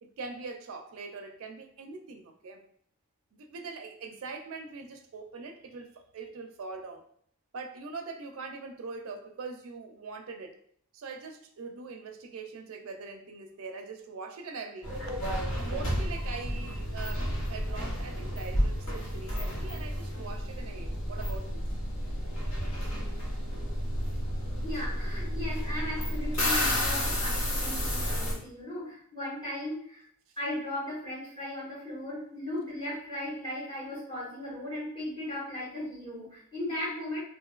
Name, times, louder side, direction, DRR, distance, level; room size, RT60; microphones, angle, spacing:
voice 1, 0.0-2.6 3.3-7.0 7.5-10.6 10.9-15.2 15.6-21.6, right 4 dB, 80° right, 4 dB, 0.4 m, -42 dB
sound 1, 14.8-28.3, equal, 65° left, 1.1 m, -31 dB
voice 2, 24.6-30.0 30.4-37.2, left 1 dB, 25° left, -9 dB, 1.5 m, -37 dB
3.7 x 2.5 x 2.3 m, 0.62 s
head